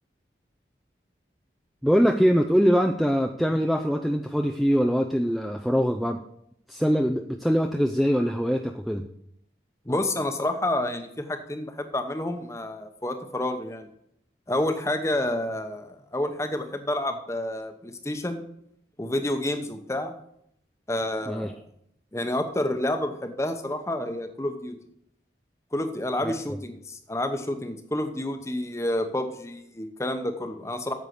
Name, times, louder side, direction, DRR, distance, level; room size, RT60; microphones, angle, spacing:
voice 1, 1.8-6.2 6.7-9.1 21.3-21.5 26.2-26.3, equal, ahead, 3 dB, 0.4 m, -23 dB
voice 2, 9.8-13.9 14.5-18.4 19.0-20.1 20.9-21.6 22.1-24.8 25.7-30.9, left 1 dB, 15° left, 7 dB, 0.9 m, -29 dB
9.3 x 7.3 x 6.6 m, 0.73 s
head